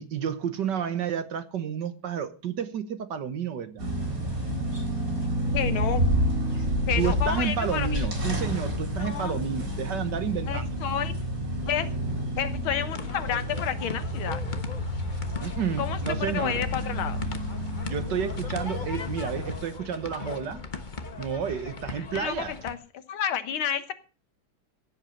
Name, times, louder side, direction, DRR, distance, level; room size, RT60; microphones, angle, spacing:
voice 1, 0.0-3.9 7.0-10.7 15.4-16.6 17.9-20.6 21.2-22.5, right 8 dB, 60° right, 1.7 m, -31 dB
sound 1, 3.8-19.6, equal, 40° right, 4.5 m, -30 dB
voice 2, 5.5-6.1 6.9-8.1 9.0-9.4 10.5-11.1 11.7-11.9 12.4-14.4 15.8-17.2 22.0-22.8 23.1-23.9, left 9 dB, 85° left, 2.0 m, -30 dB
sound 2, 12.9-22.7, left 4 dB, 30° left, 1.0 m, -39 dB
16.0 x 8.2 x 6.5 m
omnidirectional pair, 2.2 m